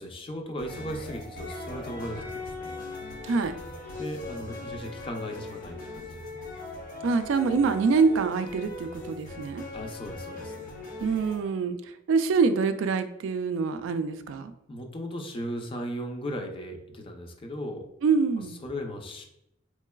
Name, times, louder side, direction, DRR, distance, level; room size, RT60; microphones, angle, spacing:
voice 1, 0.0-2.7 4.0-6.4 9.7-10.7 14.7-17.8 18.5-19.2, equal, 30° left, 3 dB, 0.5 m, -37 dB
sound 1, 0.6-11.4, left 2 dB, 45° left, 1.0 m, -40 dB
voice 2, 7.0-9.6 11.0-11.8 12.1-14.5 18.0-18.5, right 5 dB, 85° right, 10 dB, 0.3 m, -25 dB
3.7 x 3.1 x 2.3 m, 0.82 s
head